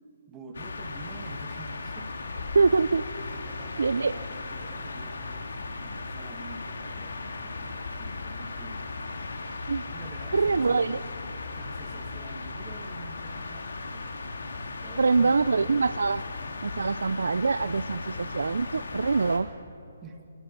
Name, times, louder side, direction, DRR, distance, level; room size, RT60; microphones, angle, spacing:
voice 1, 0.3-2.2 3.2-8.9 9.8-10.9 11.6-14.1 14.7-15.4 20.0-20.3, right 3 dB, 15° right, 4 dB, 2.2 m, -47 dB
sound 1, 0.5-19.4, left 3 dB, 70° left, 3.4 m, -37 dB
voice 2, 2.5-3.0 3.8-4.1 9.7-9.8 10.3-11.0 15.0-16.2 16.6-19.5, right 4 dB, 80° right, 18 dB, 0.5 m, -24 dB
27.5 x 20.0 x 6.0 m, 2.8 s
hypercardioid pair, 155°, 0 cm